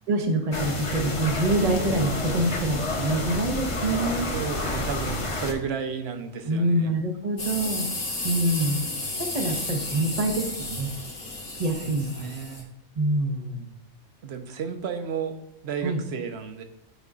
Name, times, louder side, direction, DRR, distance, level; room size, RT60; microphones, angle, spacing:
voice 1, 0.1-4.3 6.4-7.9 8.2-8.8 9.2-10.9 11.5-12.2 13.0-13.7 15.8-16.0, right 1 dB, 35° right, 3 dB, 1.0 m, -26 dB
sound 1, 0.5-5.5, left 2 dB, 30° left, 0.7 m, -29 dB
voice 2, 4.3-6.9 11.8-12.7 14.2-15.4 15.6-16.6, right 6 dB, 60° right, 7 dB, 0.9 m, -33 dB
sound 2, 7.4-12.6, left 2 dB, 80° left, 2.1 m, -33 dB
11.0 x 5.2 x 2.5 m, 0.83 s
omnidirectional pair, 1.3 m